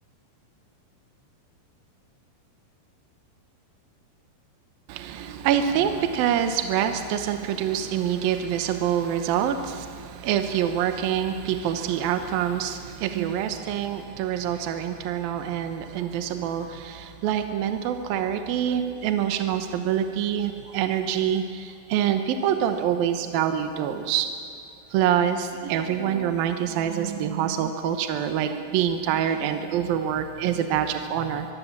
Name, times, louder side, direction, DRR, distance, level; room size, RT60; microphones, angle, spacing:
voice 1, 4.9-24.3 24.9-31.5, right 9 dB, 75° right, 7 dB, 2.8 m, -26 dB
23.5 x 23.5 x 7.4 m, 2.6 s
omnidirectional pair, 4.4 m